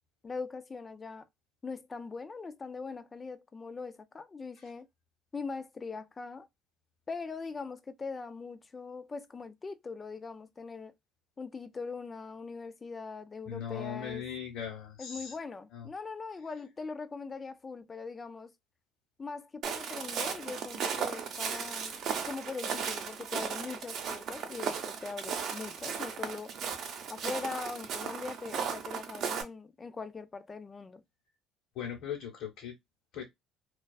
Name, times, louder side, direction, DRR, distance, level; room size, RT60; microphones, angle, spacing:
voice 1, 0.2-1.3 1.6-4.9 5.3-6.5 7.1-10.9 11.4-14.2 15.0-18.5 19.2-26.5 27.1-31.0, left 4 dB, 25° left, 0.4 m, -41 dB
voice 2, 13.5-15.4 15.7-15.9 31.7-32.8 33.1-33.2, left 8 dB, 70° left, 0.9 m, -39 dB
Walk footsteps, 19.6-29.4, right 7 dB, 60° right, 0.6 m, -36 dB
2.3 x 2.3 x 2.3 m
cardioid pair, 115°, 0 cm